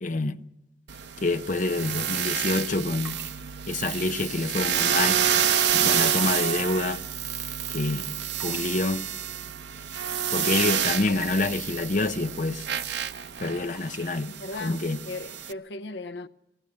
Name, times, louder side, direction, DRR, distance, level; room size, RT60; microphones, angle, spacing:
voice 1, 0.0-0.4 1.2-3.2 3.7-5.2 5.7-7.0 7.7-8.1 8.4-9.0 10.3-12.6 13.4-14.3 14.6-15.0, left 2 dB, 45° left, 0.7 m, -27 dB
sound 1, 0.9-15.5, right 9 dB, 75° right, 0.8 m, -28 dB
sound 2, 3.0-6.0 6.4-6.5 7.1-10.2 10.6-11.6 12.6-12.7 13.1-14.0, equal, 15° right, 7.0 m, -47 dB
voice 2, 14.3-16.3, left 3 dB, 80° left, 0.7 m, -37 dB
20.0 x 16.5 x 8.6 m
head